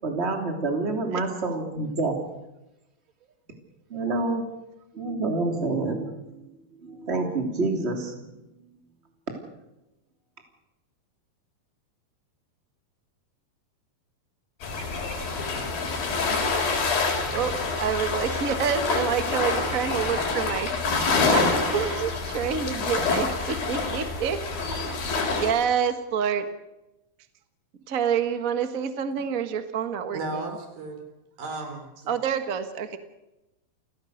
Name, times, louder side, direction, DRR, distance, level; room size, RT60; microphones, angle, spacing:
voice 1, 0.0-2.2 3.9-4.4 4.9-6.5 6.8-8.3, right 3 dB, 20° right, 3 dB, 3.0 m, -28 dB
sound 1, 14.6-25.5, left 4 dB, 90° left, 5.6 m, -27 dB
voice 2, 17.3-20.7 21.3-21.5 21.7-24.4 24.7-26.5 27.9-30.5 32.1-33.0, right 7 dB, 65° right, 9 dB, 0.8 m, -28 dB
voice 3, 30.1-31.1 31.4-32.1, right 2 dB, 80° right, 5 dB, 5.7 m, -34 dB
29.0 x 16.5 x 6.5 m, 0.95 s
omnidirectional pair, 4.0 m